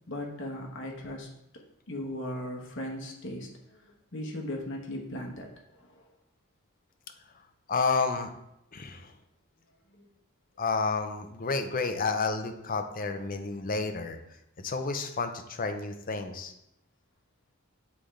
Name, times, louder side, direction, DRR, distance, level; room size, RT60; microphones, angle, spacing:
voice 1, 0.1-1.3 1.9-6.0 9.9-10.0, left 1 dB, 60° left, 0 dB, 1.3 m, -38 dB
voice 2, 7.7-8.3 8.7-9.1 10.6-14.2 14.6-16.5, left 4 dB, 40° left, 6 dB, 0.7 m, -30 dB
8.2 x 3.7 x 3.3 m, 0.81 s
head